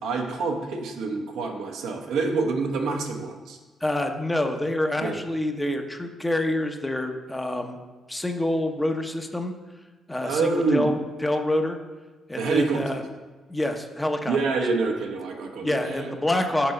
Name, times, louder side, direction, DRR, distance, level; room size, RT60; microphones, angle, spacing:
voice 1, 0.0-3.6 5.0-5.2 10.2-10.9 12.4-13.0 14.3-16.1, right 4 dB, 85° right, 2 dB, 1.1 m, -27 dB
voice 2, 3.8-7.8 8.1-9.5 10.1-11.8 12.3-13.0 13.5-14.4 15.6-16.7, left 1 dB, 10° left, 5 dB, 0.8 m, -27 dB
6.0 x 4.7 x 6.6 m, 1.3 s
cardioid pair, 90°, 0 cm